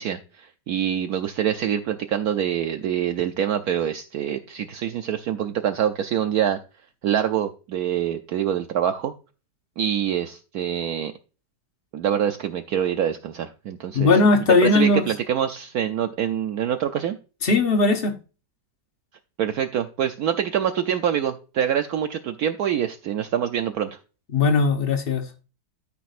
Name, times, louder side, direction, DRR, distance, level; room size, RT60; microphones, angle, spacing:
voice 1, 0.0-6.6 7.0-9.1 9.8-11.1 11.9-14.1 14.6-17.2 19.4-23.9, right 9 dB, 65° right, 1.1 m, -25 dB
voice 2, 13.9-15.0 17.4-18.1 24.3-25.2, left 3 dB, 35° left, 1.3 m, -18 dB
13.5 x 6.1 x 2.5 m
omnidirectional pair, 1.8 m